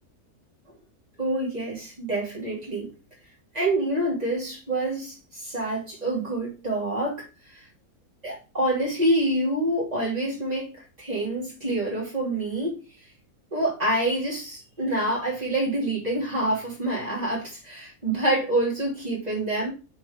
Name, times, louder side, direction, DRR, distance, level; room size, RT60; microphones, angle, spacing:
voice 1, 1.2-2.9 3.5-7.3 7.5-7.6 8.2-12.8 13.5-19.7, right 1 dB, 25° right, 3.2 m, -27 dB
8.1 x 4.5 x 3.6 m
omnidirectional pair, 1.5 m